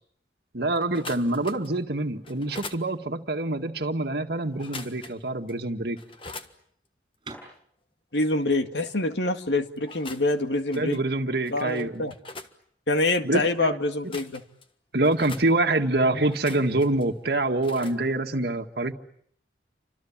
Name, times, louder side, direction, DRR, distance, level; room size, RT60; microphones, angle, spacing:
voice 1, 0.5-6.0 10.7-12.1 13.2-13.8 14.9-18.9, right 2 dB, 60° right, 6 dB, 1.9 m, -26 dB
sound 1, 0.8-1.8 2.2-2.8 4.5-5.2 5.5-5.6 6.0-6.5 9.8-10.4 10.7-11.0 11.4-12.5 13.9-14.6 15.0-15.5 16.2-17.0 17.6-18.0, left 3 dB, 30° left, 1.5 m, -42 dB
sound 2, 6.8-11.0, right 3 dB, 25° right, 6.8 m, -49 dB
voice 2, 8.1-11.0 11.5-12.1 12.9-14.4, left 2 dB, 75° left, 7 dB, 2.0 m, -25 dB
30.0 x 26.0 x 7.4 m, 0.68 s
head